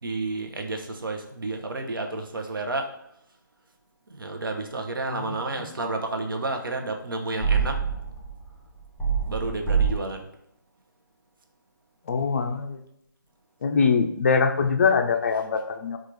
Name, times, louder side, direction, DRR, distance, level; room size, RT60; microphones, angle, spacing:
voice 1, 0.0-2.9 4.1-7.8 9.3-10.3, right 2 dB, 75° right, 4 dB, 0.7 m, -31 dB
voice 2, 5.1-5.7 12.1-12.8 13.6-16.0, left 5 dB, 40° left, 6 dB, 0.4 m, -23 dB
sound 1, 7.4-8.5 9.0-10.0, right 6 dB, 5° right, 0.7 m, -25 dB
4.4 x 2.4 x 3.1 m, 0.77 s
figure-of-eight pair, 155°, 12 cm